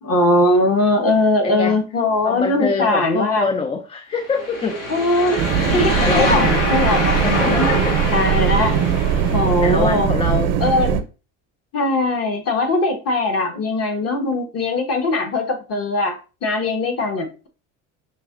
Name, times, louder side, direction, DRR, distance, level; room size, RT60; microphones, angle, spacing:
voice 1, 0.0-3.5 4.9-7.7 8.1-8.8 9.3-10.1 10.6-11.0 11.7-17.5, left 2 dB, 40° left, 1.3 m, -20 dB
voice 2, 1.4-1.8 2.2-4.8 6.0-6.5 7.2-7.9 8.3-8.4 9.6-10.5, left 4 dB, 15° left, 0.4 m, -24 dB
sound 1, 4.2-9.7, left 1 dB, 80° left, 2.5 m, -24 dB
sound 2, 5.4-11.0, right 8 dB, 70° right, 0.7 m, -20 dB
6.0 x 2.8 x 2.5 m
supercardioid pair, 95°, 36 cm